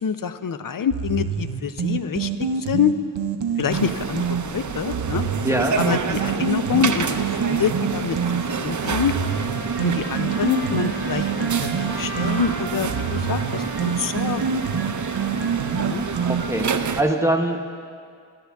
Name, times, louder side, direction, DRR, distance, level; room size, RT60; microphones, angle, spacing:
voice 1, 0.0-2.3 2.6-2.9 3.6-5.2 5.8-7.2 7.4-8.2 8.5-9.1 9.8-14.7 15.8-16.1, left 7 dB, 50° left, 11 dB, 0.6 m, -26 dB
sound 1, 0.9-4.4 4.9-8.4 8.9-16.7, right 6 dB, 85° right, 0.7 m, -27 dB
sound 2, 3.7-17.0, right 6 dB, 45° right, 0.6 m, -28 dB
voice 2, 5.4-5.8 16.2-16.7 17.0-17.6, right 1 dB, 5° right, 3 dB, 1.0 m, -22 dB
Trumpet, 8.1-16.4, left 1 dB, 75° left, 3.0 m, -39 dB
13.5 x 10.5 x 3.5 m, 2.2 s
cardioid pair, 50°, 42 cm